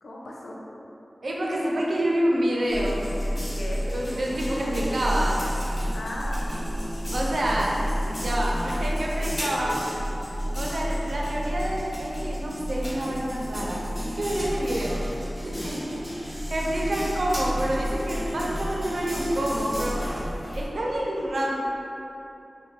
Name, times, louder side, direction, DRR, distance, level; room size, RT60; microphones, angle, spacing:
voice 1, 0.0-0.6 3.5-3.8 5.9-6.5 9.2-9.8, left 1 dB, 85° left, -4 dB, 0.4 m, -37 dB
voice 2, 1.2-3.0 3.9-5.4 7.1-7.8 8.2-9.7 10.6-15.0 15.4-20.1 20.5-21.5, right 1 dB, 75° right, -4 dB, 0.5 m, -28 dB
sound 1, 2.7-20.7, equal, 30° left, 1.2 m, -31 dB
3.7 x 2.2 x 2.9 m, 2.9 s
wide cardioid pair, 75°, 0 cm